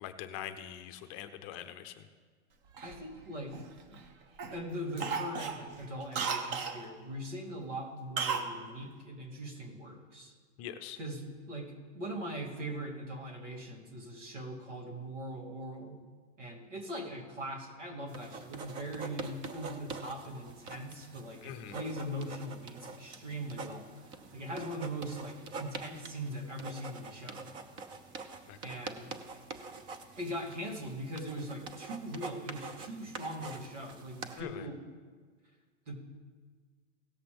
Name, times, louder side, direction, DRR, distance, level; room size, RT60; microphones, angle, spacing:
voice 1, 0.0-1.9 10.6-11.0 21.4-21.8 28.5-28.6 34.4-34.7, left 11 dB, 30° left, 9 dB, 0.6 m, -43 dB
Cough, 2.8-4.0 4.4-4.6 5.0-6.8 8.2-8.5 8.8-8.9, right 5 dB, 30° right, 0.9 m, -35 dB
voice 2, 2.8-3.5 4.5-10.3 11.0-16.0 16.4-23.9 24.3-27.5 28.6-29.2 30.1-34.8 35.9-36.0, right 1 dB, 90° right, -1 dB, 2.9 m, -41 dB
sound 1, 18.1-34.4, right 4 dB, 15° right, 0.3 m, -45 dB
17.0 x 7.5 x 3.4 m, 1.5 s
hypercardioid pair, 135°, 35 cm